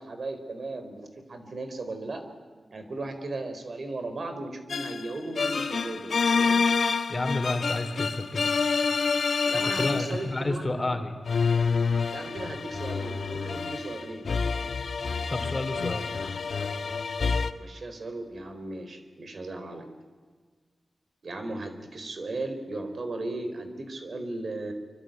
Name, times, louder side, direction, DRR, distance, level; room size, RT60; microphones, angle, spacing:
voice 1, 0.0-2.2 2.7-6.6 9.4-11.0 12.1-14.3 17.6-19.9 21.2-24.7, right 2 dB, 65° right, 7 dB, 4.4 m, -36 dB
sound 1, 4.7-10.4 11.3-17.5, left 5 dB, 75° left, 1.4 m, -27 dB
voice 2, 7.1-8.5 9.8-11.1 15.3-16.1, left 2 dB, 30° left, 7 dB, 3.7 m, -30 dB
25.5 x 24.0 x 9.3 m, 1.5 s
cardioid pair, 55°, 0 cm